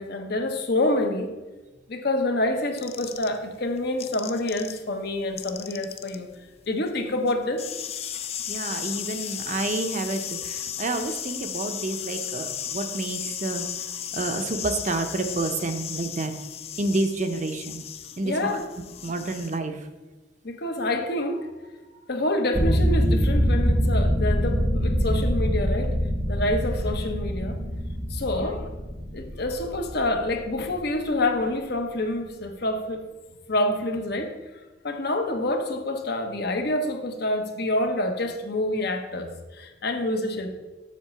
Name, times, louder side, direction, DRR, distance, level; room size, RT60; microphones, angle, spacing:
voice 1, 0.0-1.3 1.9-6.3 6.7-7.6 18.2-18.7 20.4-21.5 22.1-25.9 26.3-27.6 28.1-28.7 29.1-33.0 33.5-34.3 34.8-40.5, left 1 dB, 55° left, 5 dB, 0.9 m, -27 dB
sound 1, 2.8-4.8 5.1-19.6, left 9 dB, 30° left, 0.4 m, -35 dB
voice 2, 8.5-13.7 14.1-16.3 16.8-17.8 18.2-18.6 19.0-19.8 28.3-28.6, right 2 dB, 40° right, 7 dB, 0.6 m, -29 dB
sound 2, 22.5-31.0, equal, 5° left, 0.8 m, -24 dB
7.4 x 4.1 x 6.7 m, 1.2 s
head